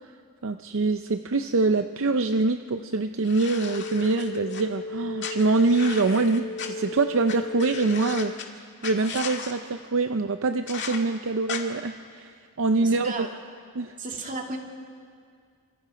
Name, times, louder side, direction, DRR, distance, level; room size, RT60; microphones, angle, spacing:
voice 1, 0.4-13.3 13.8-14.0, right 3 dB, 60° right, 9 dB, 0.6 m, -25 dB
sound 1, 3.2-4.6 5.2-6.7 7.3-7.4 7.6-8.4 8.8-9.5 10.7-11.0 11.5-11.6, left 6 dB, 55° left, 2.0 m, -36 dB
sound 2, 3.5-8.4, left 3 dB, 75° left, 0.8 m, -35 dB
voice 2, 12.8-13.3 14.0-14.6, right 3 dB, 35° right, 2 dB, 2.3 m, -34 dB
28.0 x 26.0 x 5.1 m, 2.1 s
head